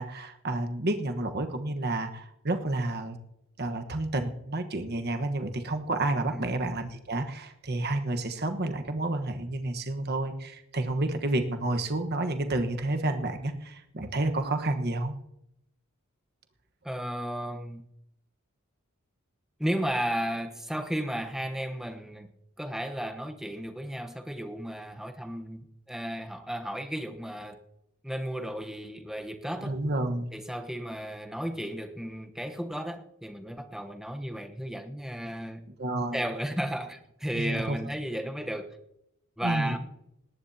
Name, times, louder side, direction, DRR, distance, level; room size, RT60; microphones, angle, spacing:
voice 1, 0.0-3.2 3.6-15.1 29.6-30.3 35.8-36.2 37.3-37.8 39.4-39.8, right 2 dB, 50° right, 6 dB, 1.3 m, -30 dB
voice 2, 16.8-17.8 19.6-22.3 22.6-27.6 28.0-29.8 30.3-35.7 36.1-38.8 39.4-39.8, equal, ahead, 5 dB, 1.0 m, -34 dB
19.5 x 18.0 x 2.8 m, 0.83 s
head